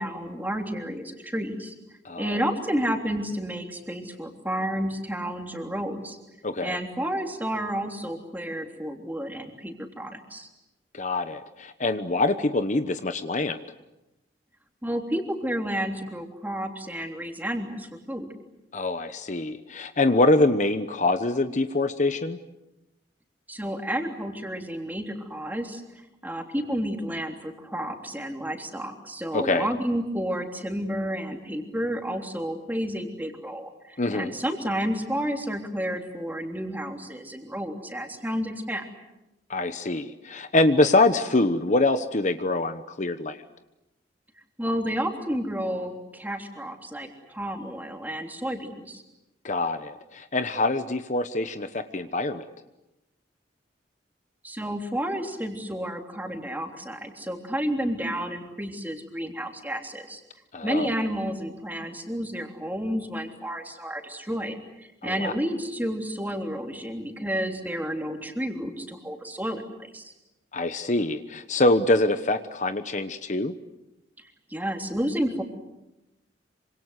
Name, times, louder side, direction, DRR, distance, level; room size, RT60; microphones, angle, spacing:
voice 1, 0.0-1.7 2.2-6.2 6.6-10.5 14.8-18.3 23.5-25.8 26.2-38.8 44.6-49.0 54.4-60.2 60.6-69.6 69.9-70.1 74.5-75.4, equal, 10° right, 3 dB, 3.3 m, -31 dB
voice 2, 2.0-2.4 6.4-6.8 10.9-13.6 18.7-22.4 29.3-29.7 34.0-34.3 39.5-43.4 49.4-52.4 60.5-60.9 65.0-65.3 70.5-73.5, left 2 dB, 40° left, 10 dB, 1.0 m, -24 dB
26.5 x 26.0 x 8.2 m, 0.96 s
head